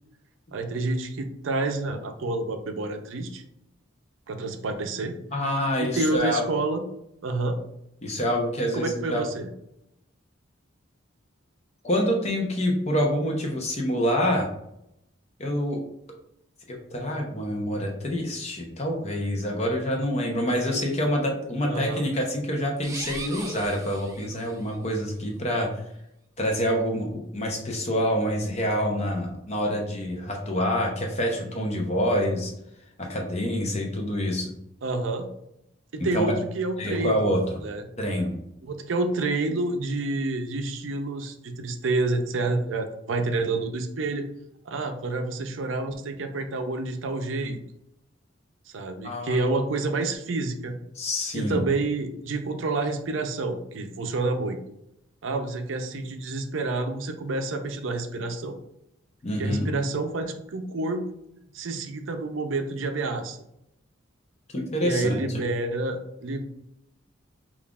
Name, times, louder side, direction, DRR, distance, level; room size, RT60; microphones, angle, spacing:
voice 1, 0.5-3.4 4.3-5.2 5.8-6.8 7.2-7.6 8.7-9.5 21.6-22.1 34.8-35.3 35.9-37.3 37.6-37.8 38.6-44.3 44.7-47.6 48.7-50.7 51.3-54.6 55.2-58.5 59.4-61.1 61.5-63.4 64.8-66.4, right 2 dB, 75° right, 6 dB, 0.5 m, -28 dB
voice 2, 5.3-6.4 8.0-9.2 11.8-14.5 15.4-15.8 16.7-25.7 26.4-32.5 33.0-34.5 36.0-36.3 36.8-37.4 38.0-38.3 49.0-49.4 51.0-51.6 59.2-59.7 64.5-65.2, equal, 35° left, 1 dB, 0.7 m, -26 dB
sound 1, 22.8-24.8, right 3 dB, 15° right, 0.3 m, -39 dB
5.4 x 2.4 x 2.4 m, 0.80 s
head